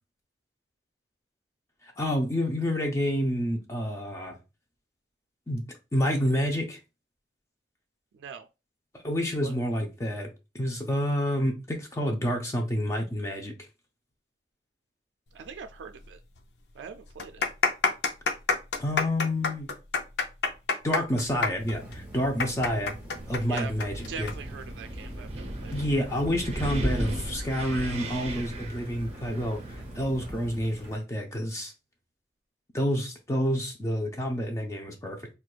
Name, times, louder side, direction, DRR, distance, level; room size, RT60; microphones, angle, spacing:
voice 1, 1.8-4.4 5.5-6.8 8.9-10.3 10.5-13.5 18.8-19.7 20.8-22.9 23.3-24.3 25.7-31.7 32.7-35.3, equal, 15° left, 0.4 m, -29 dB
voice 2, 8.1-8.5 9.4-9.5 15.3-16.2 16.8-17.5 23.5-23.7 24.1-25.8, right 6 dB, 90° right, 0.3 m, -42 dB
sound 1, 16.0-16.1 16.4-16.5 17.1-24.3 24.6-24.7 25.5-25.7, left 4 dB, 70° left, 0.5 m, -27 dB
sound 2, 21.6-31.0, right 1 dB, 10° right, 0.9 m, -43 dB
Wind, 23.1-30.5, right 1 dB, 35° right, 0.5 m, -36 dB
4.4 x 2.2 x 2.3 m
head